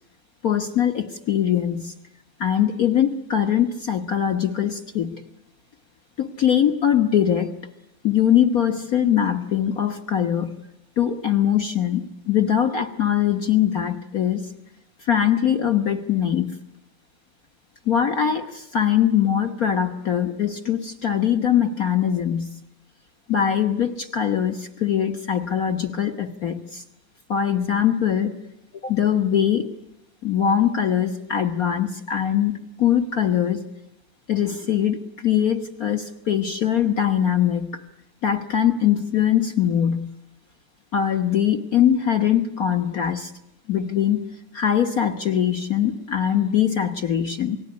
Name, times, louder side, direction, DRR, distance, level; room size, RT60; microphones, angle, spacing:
voice 1, 0.4-1.9 2.4-5.1 6.2-7.6 8.0-10.5 11.0-14.5 15.0-16.5 17.8-22.5 23.3-26.8 27.3-28.3 28.8-29.7 30.2-33.6 34.3-37.8 38.2-40.1 40.9-43.3 43.7-44.3 44.5-47.6, left 9 dB, 65° left, 7 dB, 0.8 m, -22 dB
28.5 x 19.5 x 9.6 m, 0.84 s
omnidirectional pair, 3.4 m